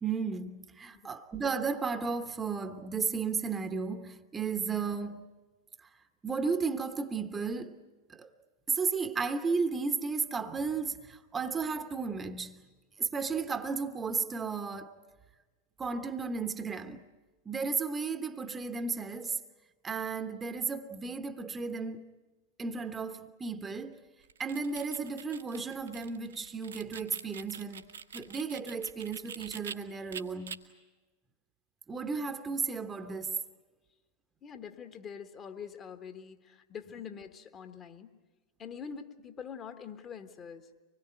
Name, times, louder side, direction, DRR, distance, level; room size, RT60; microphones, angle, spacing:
voice 1, 0.0-5.3 6.2-7.8 8.1-8.3 8.7-12.6 13.0-15.0 15.8-17.0 17.4-19.4 19.8-22.0 22.6-24.0 24.4-27.8 28.1-30.6 31.9-33.4, right 5 dB, 15° right, 1.1 m, -34 dB
sound 1, 24.2-29.7 30.1-30.6, right 6 dB, 70° right, 1.3 m, -45 dB
voice 2, 34.4-38.1 38.6-40.7, left 7 dB, 30° left, 1.4 m, -44 dB
25.0 x 21.0 x 9.0 m
figure-of-eight pair, 90°, 0 cm